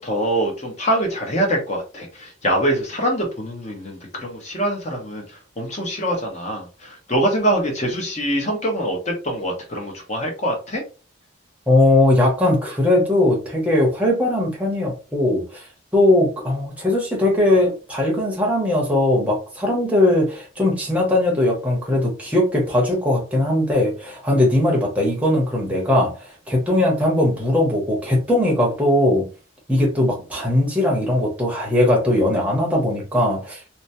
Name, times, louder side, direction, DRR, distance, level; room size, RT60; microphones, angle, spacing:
voice 1, 0.0-5.2 5.6-10.8, right 1 dB, 35° left, 0.8 m, -24 dB
voice 2, 11.7-15.7 15.9-29.3 29.7-33.6, left 1 dB, 5° right, 0.8 m, -19 dB
2.9 x 2.1 x 2.6 m
head